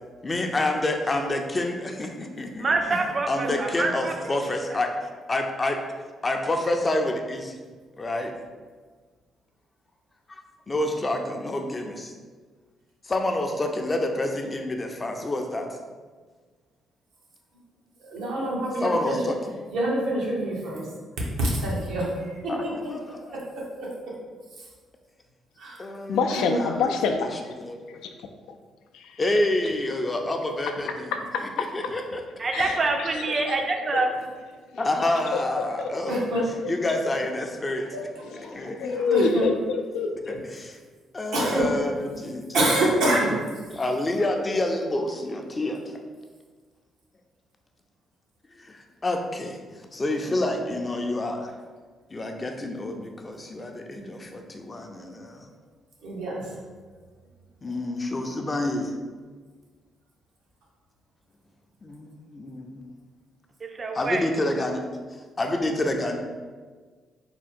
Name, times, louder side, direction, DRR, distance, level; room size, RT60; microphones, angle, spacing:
voice 1, 0.2-2.7 3.3-4.9 5.3-5.8 6.2-7.5 8.0-8.3 10.3-12.1 13.0-15.7 18.8-19.4 22.5-22.6 22.9-23.2 25.8-26.8 27.2-27.3 27.6-28.0 29.2-31.1 31.4-32.2 32.5-32.6 34.8-36.3 36.7-37.9 38.5-39.3 40.3-40.8 41.1-42.6 43.7-45.8 48.6-49.6 49.9-51.5 52.1-55.5 57.6-58.9 61.8-62.8 63.9-64.8 65.4-66.2, left 1 dB, 25° left, 3 dB, 0.5 m, -28 dB
voice 2, 2.6-4.3 32.4-34.1 63.6-64.3, right 3 dB, 40° right, 4 dB, 0.5 m, -26 dB
voice 3, 18.0-19.3 19.7-20.8 21.4-22.7 25.6-25.8 26.5-26.6 36.1-36.4 37.9-38.0 38.4-38.5 38.9-39.4 41.3-41.7 42.5-43.3 50.2-50.3 56.0-56.5, right 1 dB, 85° right, -5 dB, 1.1 m, -26 dB
voice 4, 26.1-27.5 28.0-28.1 28.9-29.2 31.1-31.7 32.5-33.6 33.9-34.1 35.3-35.4 35.8-36.7 38.2-40.4, left 5 dB, 85° left, 5 dB, 0.3 m, -27 dB
3.6 x 2.2 x 4.2 m, 1.5 s
cardioid pair, 90°, 0 cm